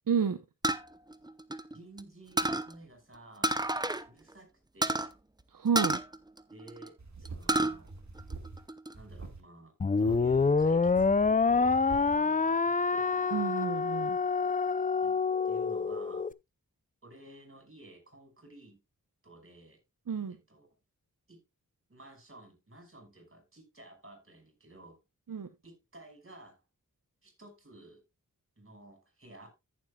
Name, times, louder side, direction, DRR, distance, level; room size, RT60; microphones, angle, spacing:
voice 1, 0.1-0.4 5.5-6.0 13.3-14.2 20.1-20.4 25.3-25.5, right 6 dB, 75° right, 0.9 m, -30 dB
sound 1, 0.6-2.0 2.4-2.7 3.4-4.0 4.3-4.4 4.8-5.1 5.7-6.9 7.2-7.7 8.2-8.9, right 1 dB, 10° right, 0.7 m, -30 dB
voice 2, 1.7-3.5 4.1-5.1 6.5-7.9 8.9-13.1 15.0-15.1 15.4-16.3 17.0-18.8 19.2-19.8 20.3-20.7 21.3-21.4 21.9-25.0 25.6-26.6 27.2-28.0 28.6-29.5, right 1 dB, 40° right, 5.7 m, -53 dB
sound 2, 7.0-8.7 8.9-9.4 9.9-12.2, right 3 dB, 55° right, 2.0 m, -45 dB
sound 3, 9.8-16.3, left 4 dB, 25° left, 0.5 m, -27 dB
14.5 x 7.4 x 2.3 m
wide cardioid pair, 55°, 33 cm